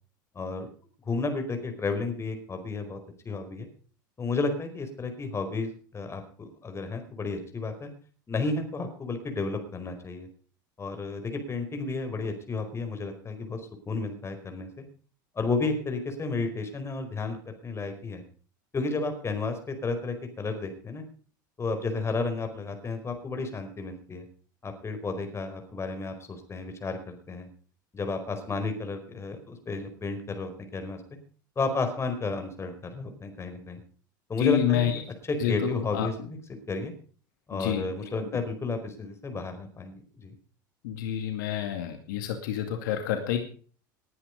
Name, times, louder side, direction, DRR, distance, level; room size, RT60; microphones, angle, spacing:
voice 1, 0.3-0.7 1.0-3.0 3.2-3.7 4.2-7.9 8.3-10.3 10.8-13.6 13.9-14.8 15.3-18.2 18.7-21.0 21.6-24.2 24.6-27.5 27.9-31.0 31.6-33.8 34.3-35.0 35.3-36.4 36.7-36.9 37.5-40.3, left 3 dB, 25° left, 7 dB, 4.8 m, -32 dB
voice 2, 34.4-35.0 35.4-36.1 37.5-37.8 40.8-43.4, left 10 dB, 70° left, 6 dB, 2.3 m, -28 dB
20.0 x 9.9 x 5.3 m, 0.43 s
hypercardioid pair, 80°, 11 cm